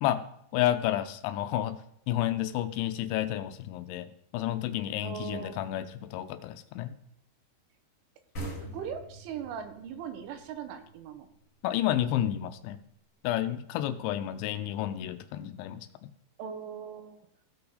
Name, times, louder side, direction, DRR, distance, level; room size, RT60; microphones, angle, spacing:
voice 1, 0.5-1.8 2.1-6.9 11.6-12.8 13.2-15.9, left 12 dB, 85° left, 10 dB, 2.9 m, -30 dB
voice 2, 5.0-5.6 8.6-11.3 16.4-17.2, right 8 dB, 85° right, 8 dB, 3.5 m, -39 dB
sound 1, 8.3-11.7, right 2 dB, 40° left, 1.1 m, -42 dB
16.0 x 5.8 x 3.9 m, 0.72 s
omnidirectional pair, 5.4 m